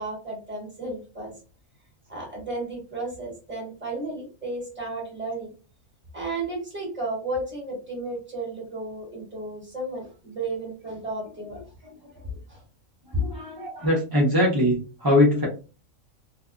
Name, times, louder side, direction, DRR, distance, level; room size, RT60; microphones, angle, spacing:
voice 1, 0.0-1.3 2.1-5.5 6.1-11.6 12.5-12.6 13.1-13.2, right 1 dB, 10° right, -4 dB, 1.2 m, -33 dB
voice 2, 13.1-15.5, left 1 dB, 30° right, -4 dB, 0.4 m, -22 dB
2.6 x 2.2 x 2.4 m, 0.34 s
omnidirectional pair, 1.4 m